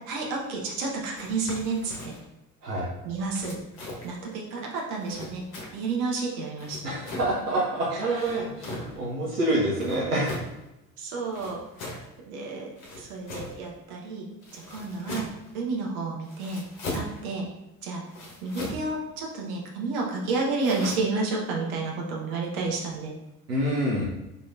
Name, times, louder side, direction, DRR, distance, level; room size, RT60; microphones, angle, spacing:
voice 1, 0.1-2.1 3.0-3.6 4.0-5.4 5.7-6.8 7.9-8.0 11.0-11.9 12.2-14.3 14.5-15.3 15.5-16.6 16.9-17.5 17.8-18.0 18.4-23.1, right 3 dB, 65° right, -1 dB, 1.0 m, -31 dB
sound 1, 1.2-2.3 3.3-4.2 5.0-5.9 6.6-7.4 8.1-9.0 9.7-10.6 11.3-12.1 12.8-13.7 14.4-15.5 16.2-17.2 18.1-18.9 20.6-20.9, left 1 dB, 60° left, 1.1 m, -39 dB
voice 2, 6.8-10.4 23.5-24.1, right 1 dB, 90° right, -6 dB, 0.7 m, -27 dB
5.0 x 3.1 x 2.4 m, 0.93 s
figure-of-eight pair, 55°, 46 cm